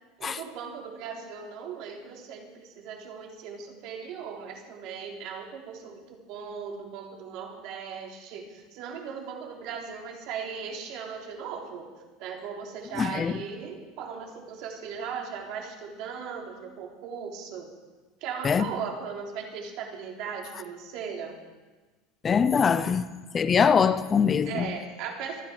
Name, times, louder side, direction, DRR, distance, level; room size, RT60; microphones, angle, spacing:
voice 1, 0.2-11.9 12.2-17.7 18.2-21.4 24.5-25.4, right 6 dB, 55° right, 3.4 m, -38 dB
voice 2, 13.0-13.3 18.4-18.7 22.2-24.7, left 6 dB, 20° left, 0.7 m, -23 dB
25.5 x 9.9 x 5.1 m
supercardioid pair, 140°, 0 cm